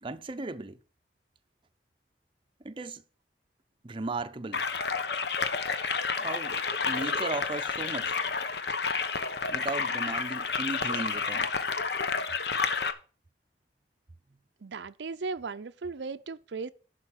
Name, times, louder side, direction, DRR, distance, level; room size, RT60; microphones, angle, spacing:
voice 1, 0.0-0.8 2.6-3.0 3.8-4.6 6.2-6.6 6.9-8.2 9.5-11.5, right 2 dB, 30° right, 0.6 m, -36 dB
sound 1, 4.5-12.9, left 5 dB, 70° left, 1.0 m, -30 dB
voice 2, 14.6-16.7, right 4 dB, 85° right, 0.6 m, -36 dB
11.5 x 4.5 x 7.3 m
head